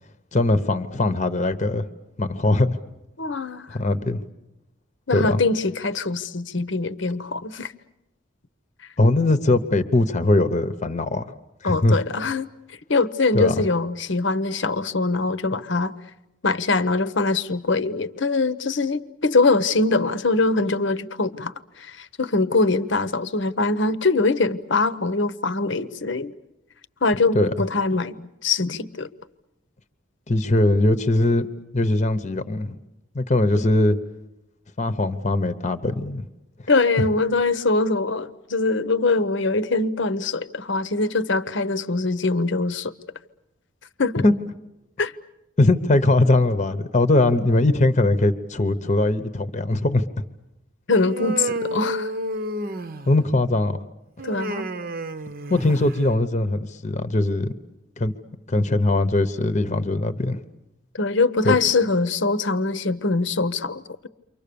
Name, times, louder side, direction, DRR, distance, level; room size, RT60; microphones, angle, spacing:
voice 1, 0.3-1.8 2.2-2.8 3.7-4.2 5.1-5.4 9.0-11.2 11.6-12.0 13.3-13.5 27.3-27.5 30.3-31.5 31.7-32.8 33.1-34.0 34.8-36.3 37.0-37.1 44.2-44.3 45.6-50.0 53.1-53.8 55.5-57.5 58.0-58.1 58.5-60.4 61.4-61.6, left 2 dB, 35° left, 11 dB, 0.9 m, -20 dB
voice 2, 3.2-3.7 5.1-7.7 11.6-12.5 12.9-15.9 16.4-26.3 27.0-28.2 28.4-29.1 33.5-33.7 36.7-42.9 44.0-44.2 45.0-45.1 50.9-52.1 54.2-54.7 60.9-64.1, left 3 dB, 60° left, 13 dB, 0.9 m, -23 dB
Human voice, 51.0-53.3 54.2-56.0, right 1 dB, 45° right, 0.8 m, -30 dB
29.0 x 25.0 x 6.9 m, 0.93 s
head